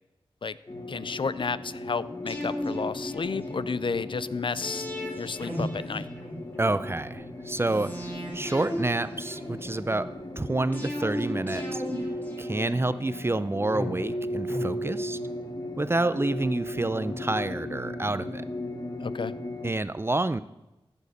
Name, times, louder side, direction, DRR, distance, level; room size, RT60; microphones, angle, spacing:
sound 1, 0.7-19.7, left 1 dB, 40° left, 1.3 m, -36 dB
voice 1, 0.9-4.9 5.2-6.1 19.0-19.3, left 5 dB, 60° left, 17 dB, 0.5 m, -31 dB
sound 2, 2.3-3.8 4.6-6.7 7.7-9.9 10.7-13.1 13.7-15.4 15.7-15.8, equal, 20° left, 3.7 m, -36 dB
voice 2, 6.6-8.1 8.3-11.8 12.4-15.2 15.8-18.5 19.6-20.4, right 2 dB, 25° right, 15 dB, 0.5 m, -28 dB
14.5 x 7.2 x 6.7 m, 0.95 s
wide cardioid pair, 85°, 10 cm